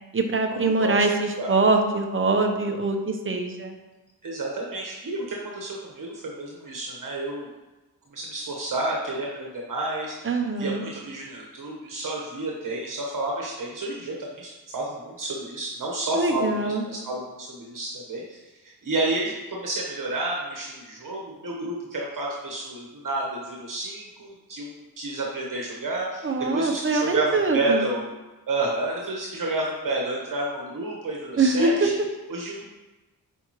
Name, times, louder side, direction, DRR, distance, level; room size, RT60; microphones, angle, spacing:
voice 1, 0.1-3.7 10.2-10.8 16.1-16.8 26.2-27.9 31.4-31.9, right 3 dB, 35° right, 4 dB, 0.8 m, -23 dB
voice 2, 4.2-7.5 8.1-10.3 10.6-26.3 26.5-28.0 28.5-31.9 32.3-32.7, right 2 dB, 60° right, -2 dB, 1.3 m, -30 dB
8.9 x 4.9 x 3.1 m, 1.1 s
wide cardioid pair, 165°, 36 cm